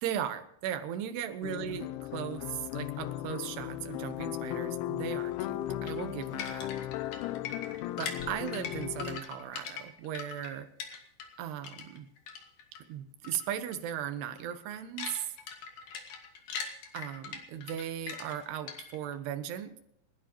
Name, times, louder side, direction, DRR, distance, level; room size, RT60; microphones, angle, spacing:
voice 1, 0.0-6.7 8.0-10.7 11.4-12.1 12.9-15.2 16.9-19.8, right 10 dB, 70° right, 8 dB, 2.7 m, -37 dB
sound 1, 1.4-9.2, left 14 dB, 85° left, 2.7 m, -36 dB
sound 2, 5.9-11.4 11.6-12.8 13.2-13.4 13.7-13.9 14.4-19.2, left 6 dB, 55° left, 3.1 m, -41 dB
29.5 x 11.0 x 3.0 m, 0.76 s
omnidirectional pair, 6.0 m